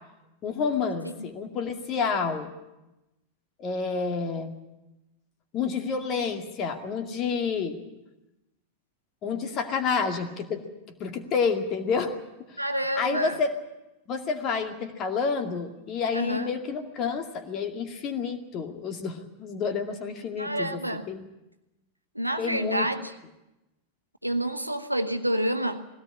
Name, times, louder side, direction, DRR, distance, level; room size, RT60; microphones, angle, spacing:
voice 1, 0.4-2.5 3.6-4.6 5.5-7.8 9.2-10.6 11.0-12.1 13.0-13.5 14.1-20.8 21.1-21.2 22.4-22.9, left 5 dB, 35° left, 5 dB, 2.2 m, -29 dB
voice 2, 12.6-13.4 16.1-16.5 20.4-21.1 22.1-23.1 24.2-25.9, right 1 dB, 90° right, 8 dB, 1.1 m, -28 dB
20.0 x 17.0 x 8.4 m, 0.96 s
figure-of-eight pair, 90°, 0 cm